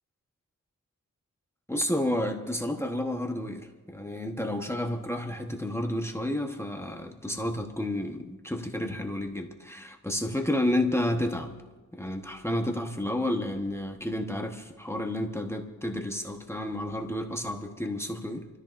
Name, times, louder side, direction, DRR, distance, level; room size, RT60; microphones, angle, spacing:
voice 1, 1.7-11.5 11.9-18.5, left 1 dB, 10° left, 3 dB, 1.0 m, -31 dB
29.5 x 14.0 x 2.5 m, 1.2 s
wide cardioid pair, 145°, 33 cm